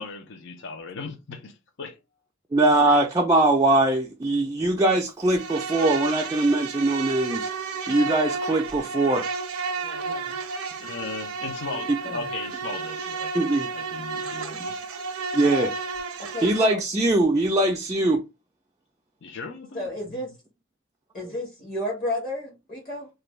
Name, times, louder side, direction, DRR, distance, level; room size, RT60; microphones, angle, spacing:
voice 1, 0.0-2.0 10.8-14.7 19.2-20.2, left 4 dB, 60° left, 0.6 m, -37 dB
voice 2, 2.5-7.5 7.9-9.2 13.3-13.7 14.2-14.3 15.3-15.7 16.4-18.2, right 2 dB, 15° right, 0.3 m, -21 dB
Insect, 5.2-16.7, right 4 dB, 85° right, 0.5 m, -32 dB
voice 3, 9.8-10.4 12.0-12.2 16.3-16.8 19.7-20.3 21.1-23.1, left 1 dB, 40° left, 1.1 m, -32 dB
2.5 x 2.2 x 3.1 m
head